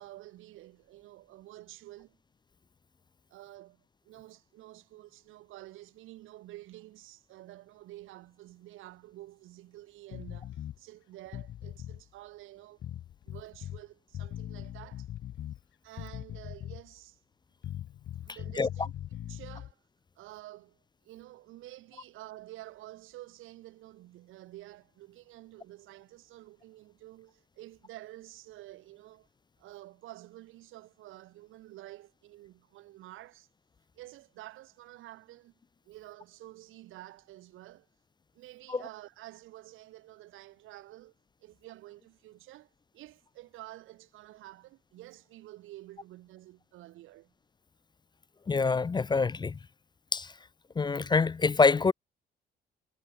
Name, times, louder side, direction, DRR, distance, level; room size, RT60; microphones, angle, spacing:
voice 1, 0.0-2.2 3.3-12.8 13.2-15.1 15.8-17.2 18.2-19.8 20.1-20.8 21.0-29.3 29.6-33.5 34.0-35.6 35.8-37.9 38.3-41.1 41.4-47.3, right 16 dB, 90° right, 1.5 m, -50 dB
sound 1, 10.1-10.8 11.3-12.0 12.8-13.8 14.1-15.6 16.0-16.9 17.6-19.7, left 12 dB, 70° left, 1.3 m, -41 dB
voice 2, 48.5-49.6 50.1-50.3 50.8-51.9, left 4 dB, 20° left, 0.4 m, -25 dB
cardioid pair, 90°, 20 cm